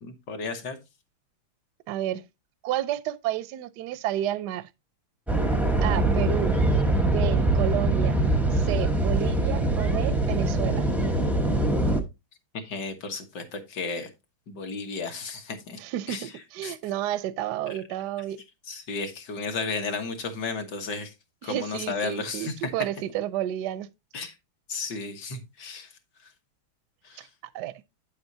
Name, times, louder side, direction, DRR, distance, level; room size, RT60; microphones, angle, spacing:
voice 1, 0.0-0.8 12.5-14.1 14.5-15.8 16.1-16.3 16.6-16.7 18.7-21.1 21.4-22.7 24.1-24.3 24.7-25.9 27.0-27.3, left 4 dB, 55° left, 1.8 m, -33 dB
voice 2, 1.9-2.2 2.6-4.7 5.8-6.6 7.0-8.2 8.5-10.9 15.8-18.4 21.4-23.9 27.2-27.3 27.5-27.8, right 12 dB, 70° right, 1.0 m, -31 dB
sound 1, 5.3-12.0, right 2 dB, ahead, 0.4 m, -23 dB
8.6 x 8.0 x 2.7 m
omnidirectional pair, 2.3 m